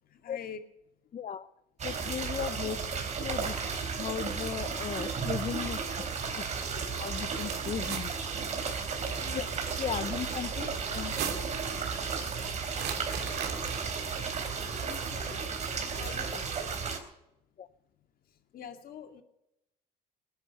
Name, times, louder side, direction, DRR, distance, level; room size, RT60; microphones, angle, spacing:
voice 1, 0.2-0.6 2.6-2.7 3.6-3.7 9.3-9.5 14.9-15.5 15.8-16.4 18.5-19.2, left 8 dB, 60° left, 7 dB, 2.3 m, -44 dB
voice 2, 1.1-1.5 1.8-2.8 3.2-3.5 4.0-5.8 6.4-6.5 7.0-8.1 9.3-9.4 9.8-11.1 17.6-17.7, left 8 dB, 40° left, 12 dB, 0.7 m, -36 dB
sound 1, 1.8-17.0, right 5 dB, 45° right, 3.7 m, -34 dB
sound 2, 7.0-8.1 8.8-9.4 10.9-11.6 12.7-14.1, right 8 dB, 75° right, 3.1 m, -39 dB
19.0 x 10.5 x 6.7 m, 0.86 s
cardioid pair, 110°, 17 cm